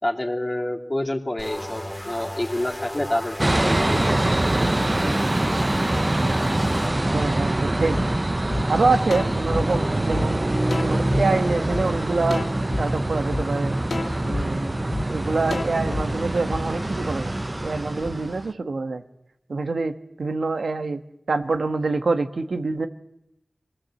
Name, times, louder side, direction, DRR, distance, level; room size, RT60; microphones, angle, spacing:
voice 1, 0.0-4.2, left 1 dB, 25° left, 2 dB, 2.6 m, -28 dB
sound 1, 1.4-6.9, equal, 10° left, 2.4 m, -34 dB
sound 2, 3.4-18.5, right 1 dB, 25° right, 0.7 m, -24 dB
voice 2, 7.1-8.0 8.7-10.4 10.8-12.4 12.8-13.8 14.2-14.8 15.1-17.3 17.6-19.0 19.5-21.0 21.3-22.9, right 3 dB, 80° right, 7 dB, 1.3 m, -25 dB
sound 3, 7.9-8.0 8.5-8.6 9.1-10.2 10.7-11.2 11.7-11.8 12.3-12.8 13.3-13.4 13.9-14.4 14.9-15.0 15.5-16.0 16.5-16.6, left 2 dB, 85° left, 2.1 m, -29 dB
24.5 x 18.0 x 7.7 m, 0.86 s
wide cardioid pair, 85°, 0 cm